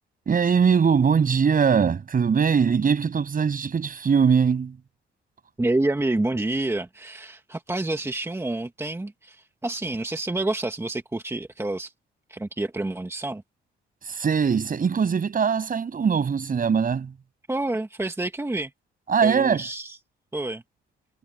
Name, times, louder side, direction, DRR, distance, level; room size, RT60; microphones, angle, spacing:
voice 1, 0.3-4.8 14.0-17.1 19.1-19.6, right 6 dB, 45° right, 7.2 m, -21 dB
voice 2, 5.6-11.9 12.3-13.4 17.5-18.7 19.2-20.0 20.3-20.6, right 2 dB, 15° right, 2.1 m, -28 dB
cardioid pair, 90°, 20 cm